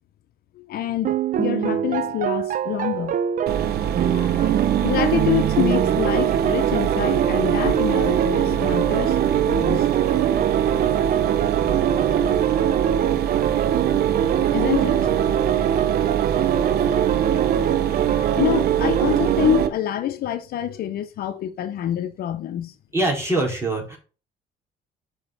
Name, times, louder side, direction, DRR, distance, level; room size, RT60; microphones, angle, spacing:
voice 1, 0.6-3.2 4.0-9.9 14.5-15.2 17.8-22.7, left 12 dB, 65° left, 0.9 m, -27 dB
sound 1, 1.0-19.7, right 9 dB, 50° right, 0.7 m, -22 dB
Mechanisms, 3.5-19.7, right 9 dB, 65° right, 1.3 m, -25 dB
voice 2, 22.9-24.0, right 2 dB, 15° right, 4.7 m, -23 dB
6.4 x 5.7 x 6.0 m
cardioid pair, 110°, 17 cm